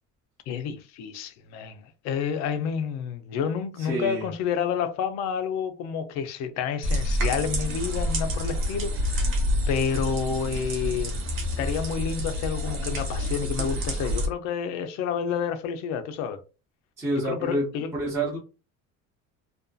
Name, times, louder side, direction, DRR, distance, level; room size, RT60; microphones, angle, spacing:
voice 1, 0.5-9.3 9.7-11.2 11.6-16.4 17.2-17.9, left 7 dB, 60° left, 0.5 m, -29 dB
voice 2, 3.8-4.2 17.0-17.7 17.9-18.4, right 1 dB, 10° right, 0.6 m, -27 dB
sound 1, 6.8-14.3, equal, 40° right, 0.9 m, -28 dB
2.6 x 2.3 x 2.3 m
cardioid pair, 175°, 31 cm